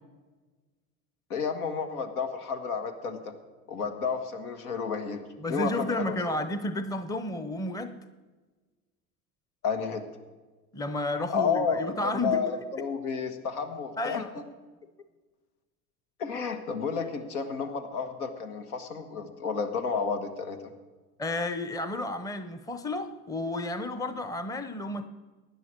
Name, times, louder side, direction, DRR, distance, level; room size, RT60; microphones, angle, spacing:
voice 1, 1.3-3.2 3.7-5.2 5.5-6.2 9.6-10.0 11.1-14.2 16.2-20.6, left 5 dB, 80° left, 6 dB, 1.6 m, -31 dB
voice 2, 5.4-7.9 10.7-12.4 14.0-14.3 21.2-25.1, left 2 dB, 10° left, 10 dB, 0.7 m, -32 dB
16.5 x 10.0 x 4.6 m, 1.3 s
hypercardioid pair, 85°, 43 cm